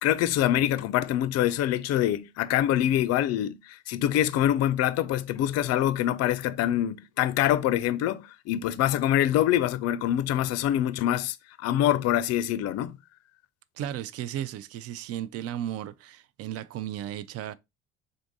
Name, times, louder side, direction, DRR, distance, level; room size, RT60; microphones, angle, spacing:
voice 1, 0.0-12.9, left 12 dB, 55° left, 0.4 m, -25 dB
voice 2, 13.8-17.6, right 11 dB, 50° right, 0.4 m, -35 dB
3.8 x 2.6 x 3.5 m
supercardioid pair, 75°, 31 cm